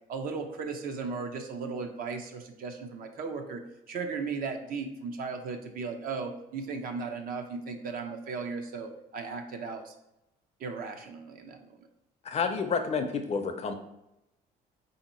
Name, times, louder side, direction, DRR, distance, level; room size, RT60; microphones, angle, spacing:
voice 1, 0.1-3.6 3.9-9.9 10.6-11.8, right 4 dB, 60° right, 5 dB, 0.6 m, -36 dB
voice 2, 12.2-13.7, left 5 dB, 40° left, 7 dB, 0.5 m, -29 dB
3.7 x 2.8 x 4.2 m, 0.88 s
cardioid pair, 110°, 17 cm